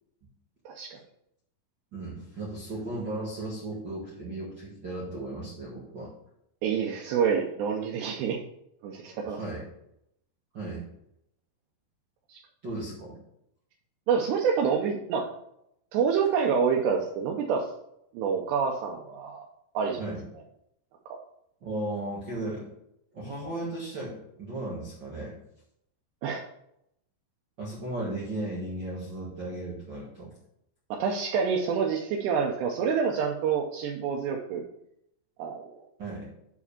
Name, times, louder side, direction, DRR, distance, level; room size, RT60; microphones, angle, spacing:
voice 1, 0.7-1.0 6.6-8.4 8.8-9.4 12.3-12.4 14.1-15.3 15.9-17.7 18.1-19.5 19.7-20.0 21.1-21.2 26.2-26.4 30.9-34.6 35.4-35.7, right 6 dB, 85° right, -1 dB, 2.9 m, -27 dB
voice 2, 1.9-6.1 9.2-9.6 10.5-10.8 12.6-13.2 20.0-20.2 21.6-22.7 23.1-25.3 27.6-30.3 36.0-36.3, right 2 dB, 55° right, -6 dB, 1.2 m, -35 dB
7.1 x 4.9 x 6.7 m, 0.77 s
omnidirectional pair, 4.8 m